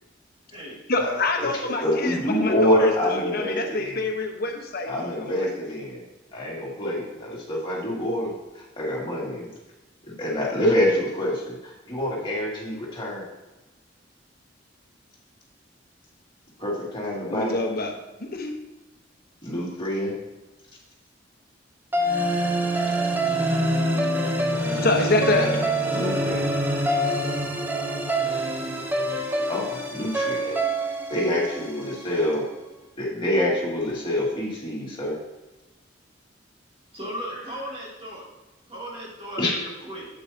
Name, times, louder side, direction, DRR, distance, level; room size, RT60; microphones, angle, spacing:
voice 1, 0.9-5.5 17.3-17.9 18.2-18.6 24.7-25.5, left 2 dB, 55° left, 3 dB, 1.2 m, -26 dB
voice 2, 1.8-4.1 4.9-6.0 6.3-9.5 10.0-13.3 16.6-17.6 19.4-20.1 25.9-26.4 29.5-30.6 31.1-32.4 33.0-35.2 39.4-39.6, left 1 dB, 25° left, -5 dB, 2.4 m, -26 dB
sound 1, 21.9-32.2, right 1 dB, 10° right, 0.8 m, -25 dB
voice 3, 36.9-38.2 38.7-40.1, equal, 30° right, -5 dB, 2.8 m, -36 dB
8.5 x 8.3 x 2.9 m, 1.1 s
head